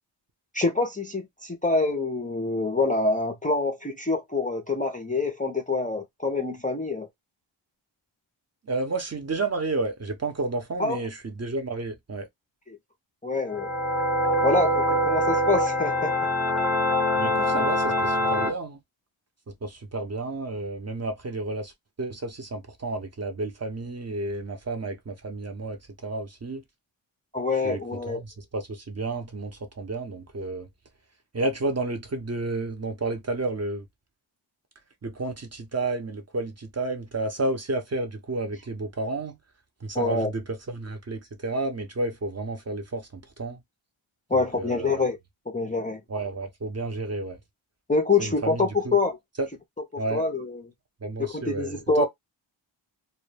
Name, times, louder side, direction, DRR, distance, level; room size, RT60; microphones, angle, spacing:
voice 1, 0.5-7.1 10.8-11.0 12.7-12.8 13.2-13.7 14.4-16.1 27.3-28.2 39.9-40.3 44.3-45.2 45.5-46.0 47.9-49.2 50.1-50.6 51.2-52.1, left 3 dB, 15° left, 0.4 m, -26 dB
voice 2, 8.6-12.3 17.2-18.8 19.5-21.7 22.0-26.6 27.6-27.8 28.1-30.7 31.3-33.8 35.0-39.4 39.8-43.6 44.3-45.0 46.1-47.4 48.2-49.0 49.4-49.5 50.0-50.2 51.0-52.1, right 2 dB, 30° right, 0.6 m, -31 dB
sound 1, 13.5-18.5, equal, ahead, 0.8 m, -24 dB
2.1 x 2.1 x 3.2 m
wide cardioid pair, 95°, 50 cm